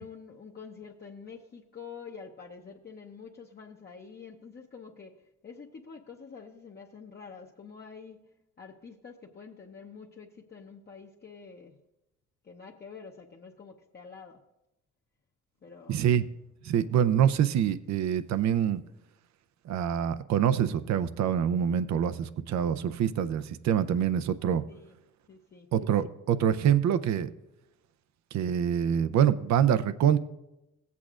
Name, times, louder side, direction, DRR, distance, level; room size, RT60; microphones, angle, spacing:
voice 1, 0.0-8.2 8.6-11.8 12.4-14.4 15.6-16.1 24.7-25.0 25.3-25.7, left 5 dB, 35° left, -1 dB, 0.8 m, -47 dB
voice 2, 15.9-16.2 16.6-18.8 19.7-24.6 25.7-27.3 28.3-30.2, right 9 dB, 65° right, 12 dB, 0.6 m, -25 dB
16.5 x 8.4 x 2.5 m, 0.94 s
cardioid pair, 90°, 30 cm